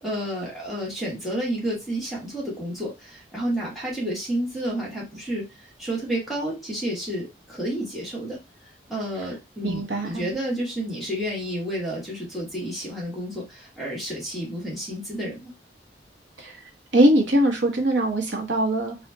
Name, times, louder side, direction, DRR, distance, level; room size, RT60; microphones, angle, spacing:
voice 1, 0.0-5.5 5.8-8.4 8.9-15.5, right 1 dB, ahead, 1.4 m, -30 dB
voice 2, 9.6-10.2 16.4-16.5 16.9-19.0, right 1 dB, 85° right, 1.1 m, -21 dB
4.2 x 2.4 x 2.7 m
head